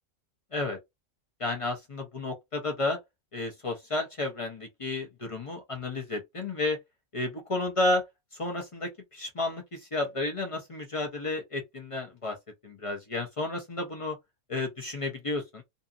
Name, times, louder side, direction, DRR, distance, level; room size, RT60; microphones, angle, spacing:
voice 1, 1.4-3.0 3.3-6.8 7.1-8.0 8.4-12.4 12.6-14.2 14.5-15.6, left 2 dB, 40° left, 0.5 m, -32 dB
2.7 x 2.4 x 2.4 m
omnidirectional pair, 1.4 m